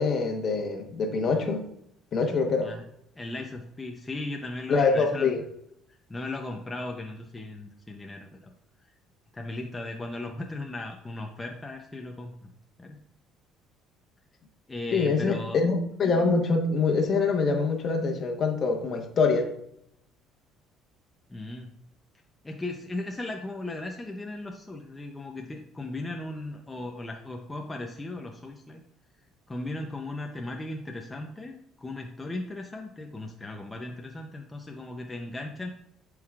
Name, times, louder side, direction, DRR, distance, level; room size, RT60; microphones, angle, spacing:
voice 1, 0.0-1.6 2.1-2.7 4.7-5.4 14.9-19.5, left 4 dB, 45° left, 3 dB, 1.2 m, -25 dB
voice 2, 3.2-5.3 6.1-8.5 9.3-12.5 12.8-13.0 14.7-15.6 21.3-21.7 22.4-28.8 29.5-35.7, left 2 dB, 15° left, 2 dB, 0.7 m, -37 dB
11.0 x 4.7 x 2.4 m, 0.75 s
cardioid pair, 110°, 0 cm